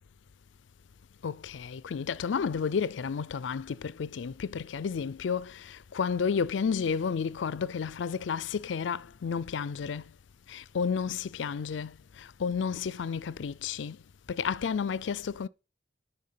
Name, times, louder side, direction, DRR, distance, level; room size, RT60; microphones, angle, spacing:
voice 1, 1.2-10.1 10.5-14.0 14.3-15.5, left 6 dB, 80° left, 0.4 m, -31 dB
10.5 x 4.5 x 7.4 m
head